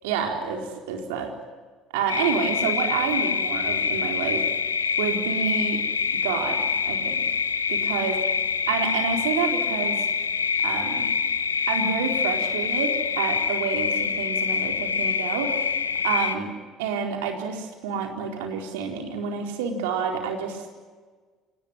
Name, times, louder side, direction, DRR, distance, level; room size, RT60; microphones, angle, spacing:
voice 1, 0.0-1.3 1.9-4.4 5.0-5.8 6.2-7.2 7.7-8.1 8.7-10.1 10.6-11.0 11.7-15.6 16.0-16.5 16.8-20.7, right 6 dB, 75° right, 3 dB, 4.3 m, -28 dB
sound 1, 2.1-16.4, left 6 dB, 90° left, 1.0 m, -25 dB
27.5 x 20.0 x 9.9 m, 1.4 s
hypercardioid pair, 60°, 0 cm